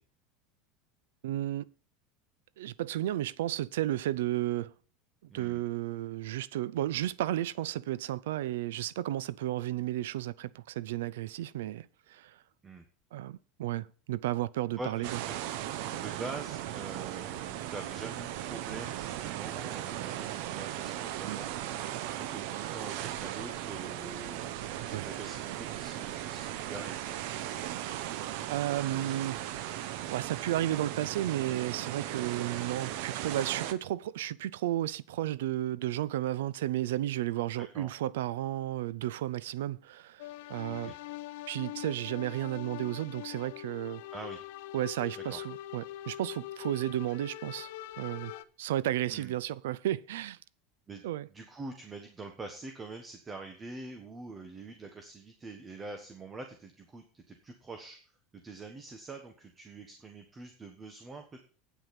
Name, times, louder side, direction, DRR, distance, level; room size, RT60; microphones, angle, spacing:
voice 1, 1.2-1.6 2.6-4.7 5.3-12.3 13.1-15.1 21.3-21.4 24.9-25.0 28.5-29.4 30.1-40.9 41.5-44.0 44.7-47.7 48.0-48.3 48.6-50.4 51.0-51.3, right 14 dB, 90° right, 0.4 m, -33 dB
voice 2, 14.8-15.4 15.9-27.2 37.7-37.9 40.7-41.0 44.1-44.5 45.3-45.4 49.1-49.3 50.9-51.0 51.3-58.0 58.3-61.4, right 3 dB, 20° right, 1.3 m, -45 dB
sound 1, 15.0-33.7, right 12 dB, 70° right, 0.8 m, -37 dB
sound 2, 40.2-48.4, left 14 dB, 75° left, 0.7 m, -43 dB
9.0 x 8.0 x 5.8 m
supercardioid pair, 130°, 0 cm